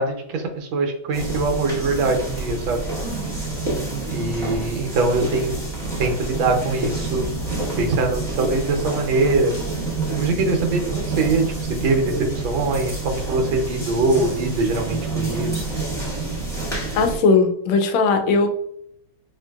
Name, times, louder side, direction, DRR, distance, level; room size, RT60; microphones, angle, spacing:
voice 1, 0.0-2.8 4.1-5.5 6.0-7.3 7.8-9.5 10.2-15.6, right 3 dB, 80° right, 3 dB, 1.4 m, -23 dB
sound 1, 1.1-17.2, right 3 dB, ahead, 1.0 m, -28 dB
voice 2, 16.9-18.5, left 4 dB, 80° left, 5 dB, 1.4 m, -18 dB
4.4 x 2.5 x 2.3 m, 0.72 s
omnidirectional pair, 2.2 m